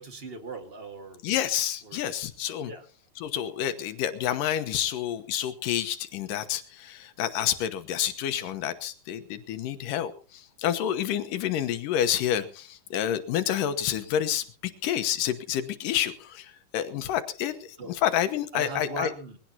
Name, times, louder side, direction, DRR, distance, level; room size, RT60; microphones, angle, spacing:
voice 1, 0.0-1.2 1.8-2.0 2.7-2.8 17.8-17.9 18.5-19.4, right 4 dB, 30° right, 6 dB, 1.2 m, -39 dB
voice 2, 1.2-2.7 3.2-19.1, left 10 dB, 85° left, 10 dB, 2.7 m, -29 dB
22.0 x 16.5 x 2.8 m, 0.37 s
omnidirectional pair, 3.7 m